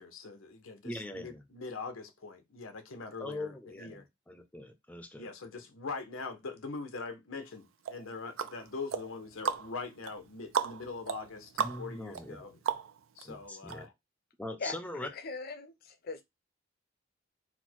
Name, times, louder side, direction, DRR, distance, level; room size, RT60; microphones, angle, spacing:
voice 1, 0.0-4.1 5.2-11.5 11.8-12.6 13.2-13.9, left 4 dB, 85° left, 0.8 m, -42 dB
voice 2, 0.8-1.4 3.2-5.3 11.6-12.4 13.2-13.9 14.4-15.1, left 1 dB, 5° left, 0.5 m, -41 dB
sound 1, 7.8-13.2 13.7-13.8, right 7 dB, 80° right, 0.5 m, -36 dB
voice 3, 15.0-16.2, left 4 dB, 50° left, 0.6 m, -40 dB
4.2 x 2.1 x 4.4 m
head